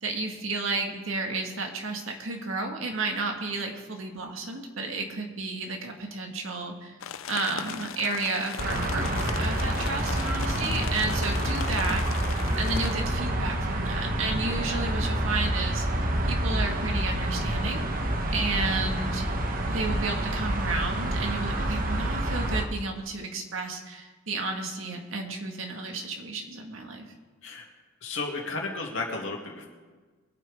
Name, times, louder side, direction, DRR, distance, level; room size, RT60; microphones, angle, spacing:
voice 1, 0.0-6.9 7.3-12.2 12.6-15.8 16.2-18.1 18.3-19.3 19.7-27.1, right 3 dB, 85° right, 3 dB, 1.8 m, -32 dB
sound 1, 7.0-12.9, left 8 dB, 85° left, 0.6 m, -38 dB
sound 2, 8.6-22.7, right 1 dB, 45° right, 1.2 m, -28 dB
voice 2, 18.4-19.1 27.4-27.7 28.0-29.7, left 3 dB, 70° left, -1 dB, 2.5 m, -34 dB
23.0 x 9.0 x 3.7 m, 1.4 s
head